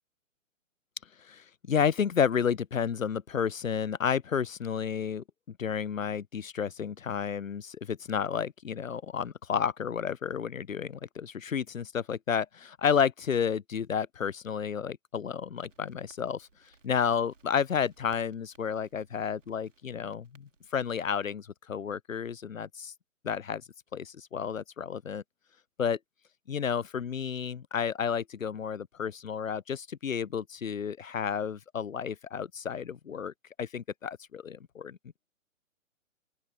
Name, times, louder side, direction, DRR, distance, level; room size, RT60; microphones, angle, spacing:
voice 1, 1.2-5.2 5.6-16.5 16.8-22.9 23.2-23.6 23.9-25.2 25.8-26.0 26.5-33.3 33.6-35.0, left 7 dB, 85° left, 0.6 m, -31 dB
Crackle, 15.6-21.3, right 4 dB, 70° right, 3.1 m, -61 dB
open air
figure-of-eight pair, 130°, 39 cm